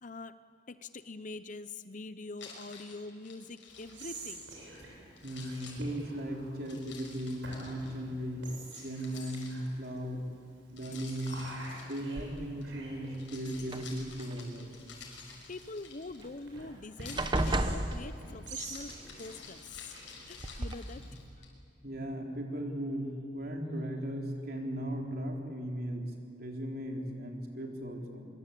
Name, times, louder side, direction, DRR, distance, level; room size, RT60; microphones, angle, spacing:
voice 1, 0.0-4.4 15.5-20.0 20.3-21.0 21.4-21.5, left 3 dB, 45° left, 13 dB, 0.8 m, -44 dB
Keys jangling, 2.4-4.8 5.2-7.9 8.7-9.9 10.8-12.6 13.1-16.4 16.9-21.5, left 5 dB, 80° left, 6.2 m, -51 dB
Whispering, 3.7-21.3, right 2 dB, 75° right, 7.1 m, -49 dB
voice 2, 5.2-8.5 8.8-10.3 10.7-11.4 11.9-14.8 21.8-26.1 26.4-28.3, equal, 55° right, 1 dB, 3.8 m, -37 dB
sound 1, 12.2-12.7 13.6-14.4 16.2-16.3 16.6-16.8 17.2-18.6 19.8-19.9 20.4-20.8, right 1 dB, 25° right, 1.0 m, -33 dB
24.5 x 23.5 x 8.5 m, 2.6 s
head